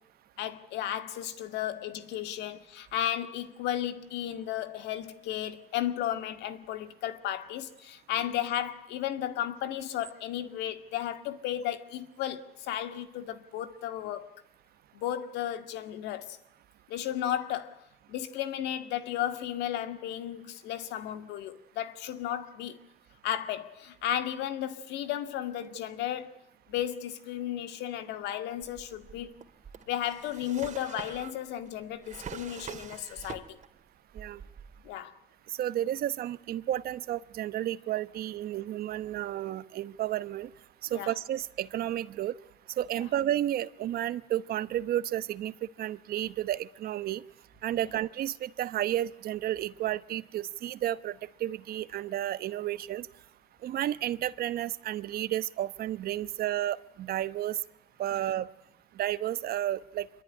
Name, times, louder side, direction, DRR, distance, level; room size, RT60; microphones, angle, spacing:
voice 1, 0.4-14.4 14.9-16.4 16.9-17.8 18.1-22.8 23.2-26.3 26.7-29.3 29.9-33.6 34.8-35.1 40.9-41.1 42.9-43.0, left 11 dB, 90° left, 2.0 m, -34 dB
Drawer open or close, 28.6-33.8 34.1-34.9, right 7 dB, 45° right, 2.3 m, -45 dB
voice 2, 35.6-40.5 40.9-42.3 42.8-45.5 45.8-47.2 47.6-53.1 53.6-57.6 58.0-58.5 59.0-60.1, right 12 dB, 65° right, 1.0 m, -32 dB
26.0 x 22.0 x 9.8 m
cardioid pair, 110°, 17 cm